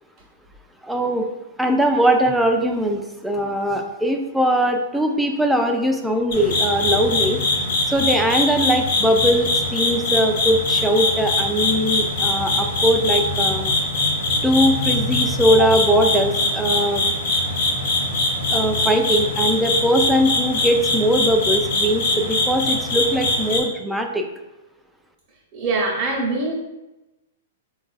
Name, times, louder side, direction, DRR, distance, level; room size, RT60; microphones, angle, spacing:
voice 1, 0.8-1.3 1.6-7.4 7.9-13.7 14.4-17.0 18.5-24.2, equal, 5° right, 3 dB, 0.3 m, -20 dB
sound 1, 6.3-23.6, left 2 dB, 60° left, 0.7 m, -22 dB
voice 2, 25.5-26.5, right 3 dB, 35° right, -6 dB, 0.8 m, -23 dB
3.8 x 2.4 x 2.4 m, 0.99 s
hypercardioid pair, 115°, 0 cm